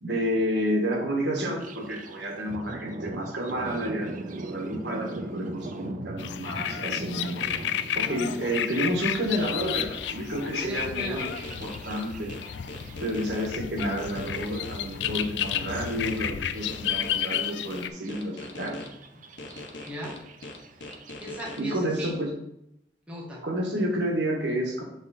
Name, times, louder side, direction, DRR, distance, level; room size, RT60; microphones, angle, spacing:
voice 1, 0.0-7.4 7.9-12.3 13.0-18.8 21.6-22.3 23.4-24.8, equal, 80° right, 0 dB, 1.6 m, -30 dB
Thunder, 1.6-21.1, right 2 dB, 45° right, 0.5 m, -42 dB
sound 1, 6.2-17.9, left 9 dB, 70° left, 0.4 m, -32 dB
voice 2, 8.0-8.4 10.6-11.3 19.9-20.2 21.2-22.2 23.1-23.4, equal, 5° right, -5 dB, 1.6 m, -37 dB
sound 2, 11.2-13.5 14.0-16.2 16.7-18.9 19.4-21.6, left 2 dB, 90° left, 1.0 m, -41 dB
7.2 x 3.7 x 4.0 m, 0.79 s
head